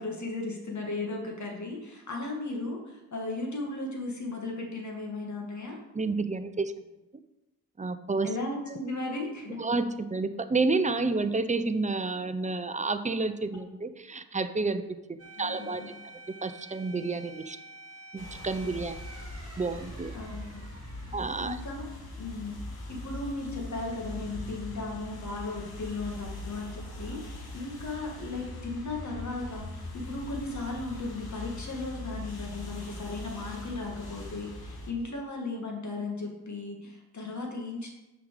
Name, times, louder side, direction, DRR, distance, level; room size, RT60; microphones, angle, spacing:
voice 1, 0.0-5.8 8.2-9.6 15.4-15.9 20.1-20.6 21.0-21.9 22.2-22.6 22.9-37.9, left 2 dB, 50° left, 0 dB, 2.2 m, -36 dB
voice 2, 5.9-6.7 7.8-8.3 9.6-14.8 15.4-15.9 16.4-17.6 18.1-19.0 19.6-20.1 21.1-21.6, right 3 dB, 20° right, 10 dB, 0.6 m, -30 dB
sound 1, 15.2-23.8 24.2-24.3 29.2-29.7, right 2 dB, 40° right, 1.4 m, -51 dB
sound 2, 18.2-34.9, left 1 dB, 75° left, 2.1 m, -41 dB
6.8 x 5.1 x 6.5 m, 1.0 s
cardioid pair, 65°, 38 cm